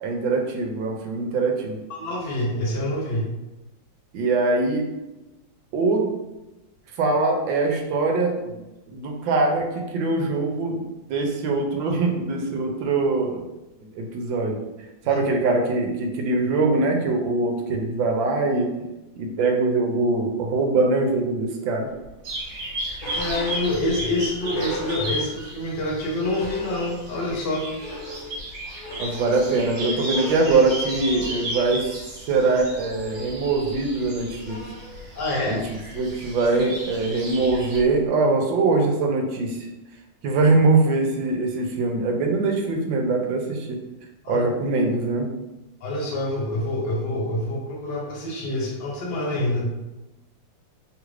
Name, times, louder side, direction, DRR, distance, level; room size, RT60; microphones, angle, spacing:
voice 1, 0.0-1.8 4.1-4.9 5.7-6.1 7.0-8.6 8.9-10.8 11.1-13.4 13.9-14.6 15.1-18.7 19.2-21.9 29.0-31.8 32.3-34.6 35.5-39.7 40.2-43.8 44.3-45.3, right 3 dB, 85° right, 2 dB, 1.3 m, -22 dB
voice 2, 1.9-3.3 15.0-15.2 23.1-27.7 35.1-35.6 44.2-44.4 45.8-49.7, left 1 dB, 70° left, -2 dB, 1.3 m, -26 dB
sound 1, 22.0-25.6 25.9-26.0 26.2-27.3 27.6-38.1, left 1 dB, 55° left, 0.5 m, -38 dB
sound 2, 22.2-37.8, right 1 dB, 65° right, 1.6 m, -35 dB
3.3 x 2.4 x 3.1 m, 1.0 s
omnidirectional pair, 2.1 m